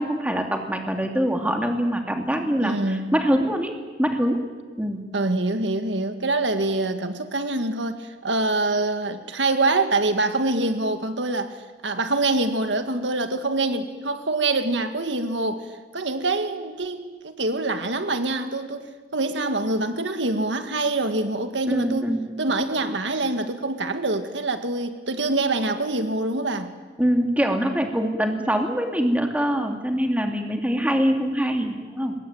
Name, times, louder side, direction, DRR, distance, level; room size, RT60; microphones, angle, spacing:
voice 1, 0.0-3.7 4.0-4.4 4.8-5.0 21.7-22.2 27.0-32.1, equal, 10° right, 3 dB, 2.8 m, -24 dB
voice 2, 2.3-3.1 5.1-11.6 11.8-26.7, right 2 dB, 85° right, 8 dB, 1.9 m, -25 dB
24.5 x 21.5 x 9.2 m, 1.4 s
head